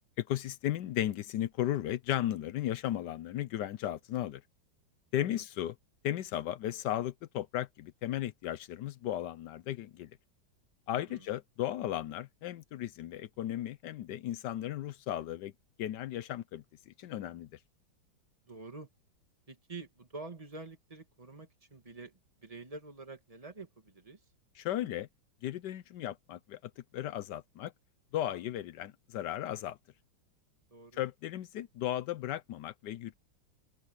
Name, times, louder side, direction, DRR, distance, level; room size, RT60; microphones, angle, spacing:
voice 1, 0.2-4.4 5.1-5.8 6.0-10.1 10.9-15.5 15.8-17.5 24.6-25.1 25.4-27.7 28.1-29.8 30.9-33.1, left 12 dB, 70° left, 1.1 m, -35 dB
voice 2, 10.9-11.3 18.5-18.9 19.5-24.2 30.7-31.0, right 3 dB, 20° right, 2.1 m, -47 dB
open air
omnidirectional pair, 2.1 m